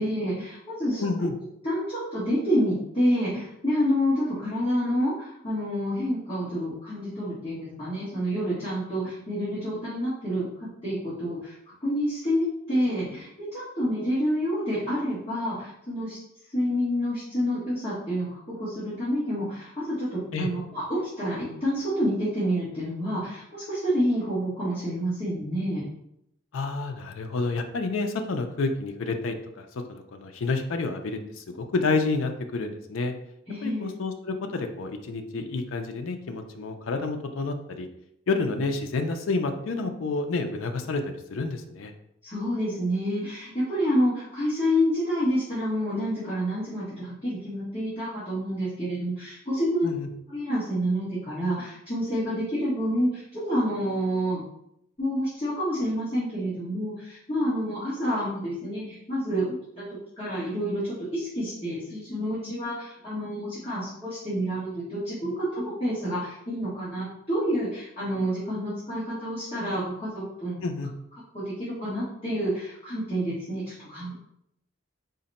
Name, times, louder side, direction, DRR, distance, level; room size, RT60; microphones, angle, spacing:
voice 1, 0.0-1.3 1.6-11.6 11.8-16.2 16.5-25.8 33.5-33.9 42.2-49.9 50.3-54.4 55.0-59.9 60.2-70.6 71.3-74.1, equal, 30° left, -12 dB, 1.3 m, -28 dB
voice 2, 1.0-1.3 20.3-20.5 26.5-33.1 33.6-37.9 38.3-41.9 49.8-50.1 70.6-70.9, left 3 dB, 85° left, 5 dB, 0.4 m, -29 dB
3.9 x 2.1 x 4.0 m, 0.77 s
head